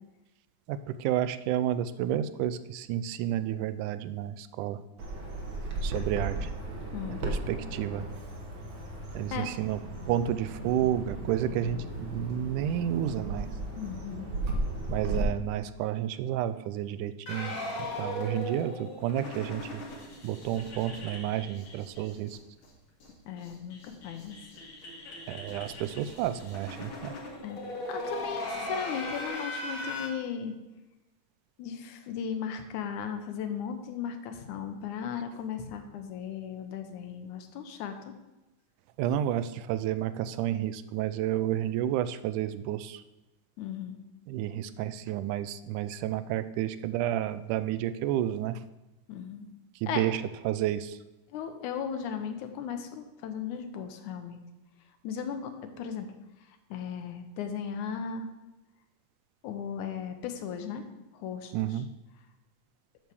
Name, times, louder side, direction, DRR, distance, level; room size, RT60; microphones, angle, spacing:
voice 1, 0.7-4.8 5.8-6.5 7.1-8.1 9.1-9.8 10.1-13.5 14.9-17.6 18.0-19.8 20.2-22.4 25.3-27.2 39.0-43.0 44.3-48.6 49.8-51.0 61.5-61.9, right 11 dB, 85° right, 13 dB, 2.0 m, -31 dB
Bird vocalization bird call bird song, 5.0-15.2, right 2 dB, 50° right, 1.6 m, -36 dB
voice 2, 6.9-7.2 9.3-9.5 13.8-14.3 23.3-24.4 27.4-30.5 31.6-38.1 43.6-44.0 49.1-49.5 49.9-50.0 51.3-54.4 55.0-56.1 56.7-58.3 59.4-60.9 61.1-61.5, left 7 dB, 75° left, 7 dB, 2.2 m, -36 dB
sound 1, 17.3-22.4 22.6-22.7 23.0-23.1 23.4-30.1, left 1 dB, 55° left, 3.2 m, -39 dB
9.4 x 4.8 x 6.8 m, 1.0 s
omnidirectional pair, 3.6 m